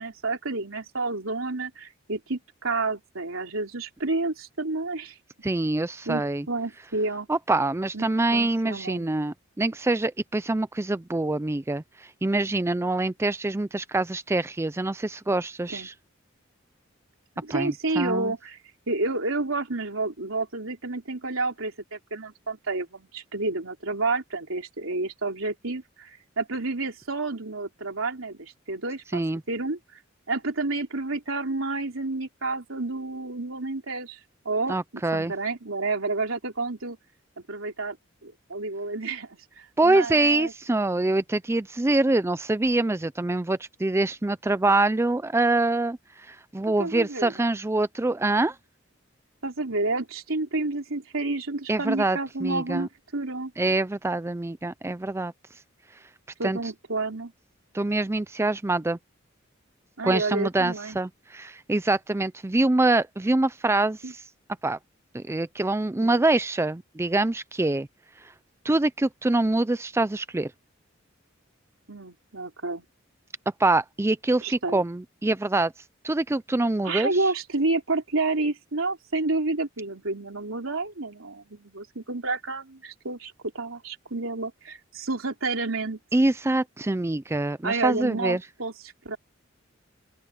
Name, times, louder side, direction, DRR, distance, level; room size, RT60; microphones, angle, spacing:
voice 1, 0.0-5.2 6.1-7.3 7.9-9.1 15.7-15.9 17.4-18.6 18.9-29.8 30.3-34.2 34.5-34.7 35.1-37.0 37.4-38.0 38.2-40.5 46.8-47.6 49.4-53.5 56.4-57.3 60.0-61.0 64.0-64.1 66.0-66.2 71.9-72.9 74.4-74.8 76.8-86.0 87.6-88.7 89.1-89.2, right 3 dB, 90° right, 3.4 m, -30 dB
voice 2, 5.4-6.5 7.3-11.8 12.2-15.9 17.5-18.3 29.1-29.4 34.7-35.3 39.8-46.0 46.3-48.6 51.7-52.9 53.6-55.3 56.4-56.6 57.7-59.0 60.0-64.0 64.6-64.8 65.1-67.9 68.6-70.5 73.6-75.7 76.0-77.1 86.1-88.4, right 2 dB, 15° right, 0.4 m, -25 dB
open air
head